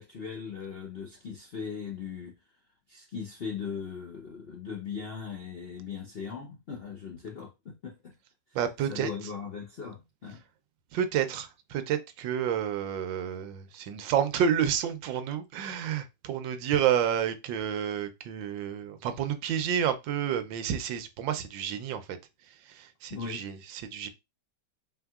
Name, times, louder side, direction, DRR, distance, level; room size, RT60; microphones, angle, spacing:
voice 1, 0.0-2.3 2.9-8.1 8.9-10.4 23.1-23.4, left 6 dB, 60° left, 0.6 m, -39 dB
voice 2, 8.5-9.1 10.9-22.2 22.6-24.1, right 9 dB, 80° right, 1.4 m, -30 dB
4.4 x 3.8 x 2.3 m
omnidirectional pair, 2.0 m